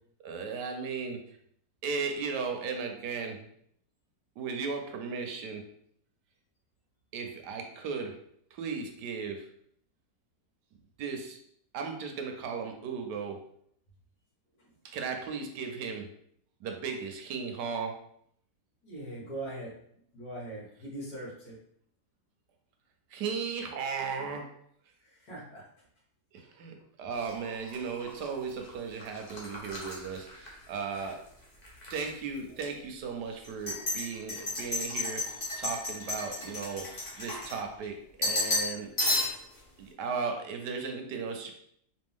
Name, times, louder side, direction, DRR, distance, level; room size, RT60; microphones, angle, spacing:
voice 1, 0.2-1.2 1.8-3.4 4.4-5.6 7.1-8.2 8.5-9.5 11.0-11.4 11.7-13.4 14.8-16.1 16.6-17.9 23.1-24.5 26.3-26.7 27.0-31.4 31.9-36.9 37.2-38.9 39.8-41.5, right 5 dB, 80° right, 4 dB, 1.3 m, -36 dB
voice 2, 18.8-19.7 20.1-21.6 25.2-25.6, right 1 dB, 60° left, -6 dB, 2.1 m, -40 dB
sound 1, 27.2-31.1 31.4-32.1 32.6-32.7 33.4-37.9 38.2-38.7 39.0-39.6, left 2 dB, 30° left, 0.9 m, -33 dB
4.2 x 2.8 x 3.6 m, 0.68 s
omnidirectional pair, 1.8 m